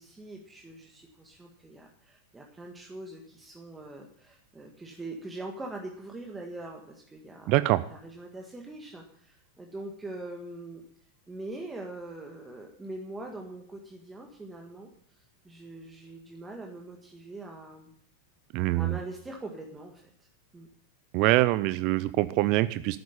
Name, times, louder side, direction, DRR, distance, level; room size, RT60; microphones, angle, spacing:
voice 1, 0.0-10.8 11.3-17.9 18.7-20.3 20.5-20.7, right 2 dB, 10° right, 1 dB, 1.7 m, -43 dB
voice 2, 7.5-7.8 18.5-19.0 21.1-23.0, right 18 dB, 45° right, 15 dB, 0.5 m, -24 dB
12.0 x 9.4 x 7.1 m, 0.62 s
figure-of-eight pair, 90°, 0 cm